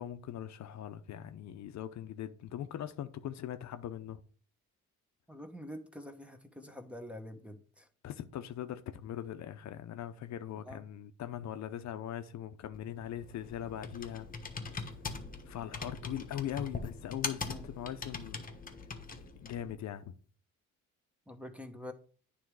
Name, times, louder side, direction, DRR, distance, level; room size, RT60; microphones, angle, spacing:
voice 1, 0.0-4.2 8.0-14.3 15.5-18.4 19.4-20.2, left 10 dB, 65° left, 0.6 m, -41 dB
voice 2, 5.3-7.9 10.6-10.8 17.5-17.7 21.3-21.9, left 1 dB, 5° right, 1.0 m, -46 dB
Computer keyboard, 12.7-19.7, left 4 dB, 30° left, 1.1 m, -42 dB
9.3 x 3.4 x 4.7 m
cardioid pair, 90°, 30 cm